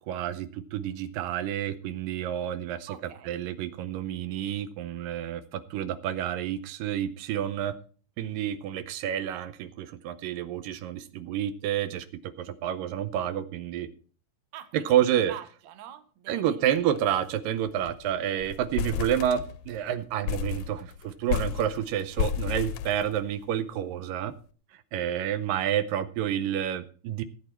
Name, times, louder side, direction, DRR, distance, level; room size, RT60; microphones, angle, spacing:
voice 1, 0.1-2.9 3.3-7.8 8.2-12.1 12.4-13.9 14.7-15.3 16.3-24.3 24.9-27.2, right 10 dB, 85° right, 11 dB, 2.4 m, -29 dB
voice 2, 2.9-3.4 14.5-14.9 15.2-17.0, right 11 dB, 65° right, 9 dB, 2.3 m, -45 dB
sound 1, 16.8-17.0 17.3-17.4 17.7-18.0 18.4-19.8 20.2-23.5, left 10 dB, 75° left, 1.8 m, -32 dB
16.0 x 8.5 x 4.3 m, 0.41 s
omnidirectional pair, 3.8 m